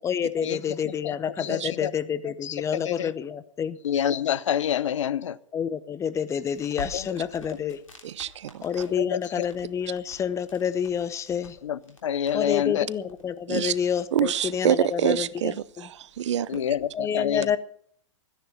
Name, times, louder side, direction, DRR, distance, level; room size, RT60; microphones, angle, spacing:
voice 1, 0.0-3.8 5.5-7.8 8.6-11.6 12.3-15.9 16.9-17.6, left 8 dB, 20° left, 0.8 m, -28 dB
voice 2, 0.8-1.9 2.4-2.5 2.8-3.1 3.8-5.4 6.9-7.1 9.0-9.5 11.6-12.9 16.5-17.5, left 9 dB, 70° left, 0.7 m, -27 dB
Crackle, 6.4-17.0, left 3 dB, 85° left, 3.3 m, -49 dB
voice 3, 8.0-8.6 13.5-13.7 14.1-16.6, right 11 dB, 65° right, 0.6 m, -26 dB
13.5 x 10.0 x 7.1 m
hypercardioid pair, 115°, 16 cm